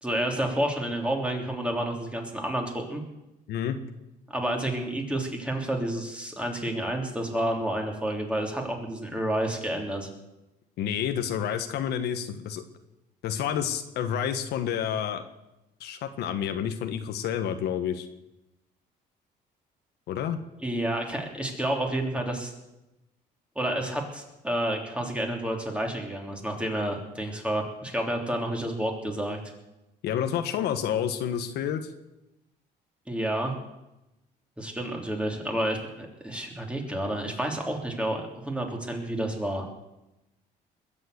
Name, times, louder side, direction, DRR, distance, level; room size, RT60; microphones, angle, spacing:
voice 1, 0.0-3.0 4.3-10.1 20.6-22.5 23.5-29.4 33.1-33.5 34.6-39.7, right 1 dB, 5° right, 1 dB, 3.4 m, -30 dB
voice 2, 3.5-3.8 10.8-12.6 13.2-15.2 15.8-18.1 20.1-20.4 30.0-31.9, left 9 dB, 75° left, 8 dB, 1.4 m, -29 dB
21.0 x 7.8 x 8.0 m, 0.95 s
cardioid pair, 110°, 17 cm